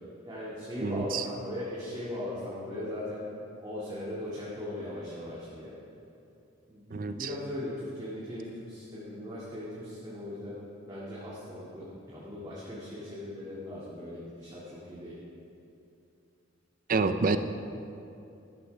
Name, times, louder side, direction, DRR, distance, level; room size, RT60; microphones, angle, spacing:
voice 1, 0.2-3.2 3.6-5.7 6.7-10.6 10.9-15.2, left 1 dB, 20° right, -9 dB, 2.2 m, -39 dB
voice 2, 0.8-1.2 6.9-7.3 16.9-17.4, right 4 dB, 45° right, 10 dB, 0.6 m, -28 dB
14.0 x 13.0 x 3.4 m, 2.7 s
head